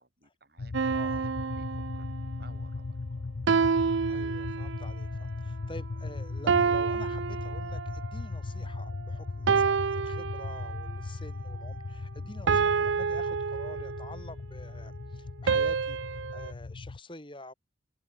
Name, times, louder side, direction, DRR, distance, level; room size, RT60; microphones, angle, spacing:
voice 1, 0.0-3.4 12.2-12.4, right 2 dB, 55° right, 7.5 m, -59 dB
sound 1, 0.6-17.0, left 3 dB, 65° left, 0.6 m, -38 dB
sound 2, 0.7-2.4 3.5-5.0 6.5-8.1 9.5-11.0 12.5-14.2 15.5-16.5, right 5 dB, 80° right, 0.5 m, -28 dB
voice 2, 0.9-1.2 4.1-16.0 16.3-17.5, left 1 dB, 25° left, 6.2 m, -48 dB
head